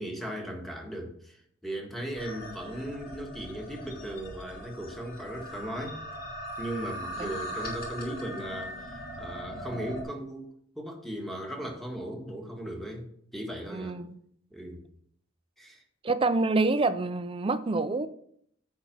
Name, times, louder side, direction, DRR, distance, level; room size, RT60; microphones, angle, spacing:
voice 1, 0.0-6.0 6.6-10.5 10.7-14.0 14.5-14.8 15.6-15.8, right 1 dB, ahead, 0 dB, 1.6 m, -37 dB
sound 1, 2.1-10.0, equal, 50° left, 2.5 m, -40 dB
voice 2, 13.7-14.1 16.0-18.1, right 3 dB, 25° right, 12 dB, 0.5 m, -27 dB
9.7 x 4.3 x 6.1 m, 0.68 s
head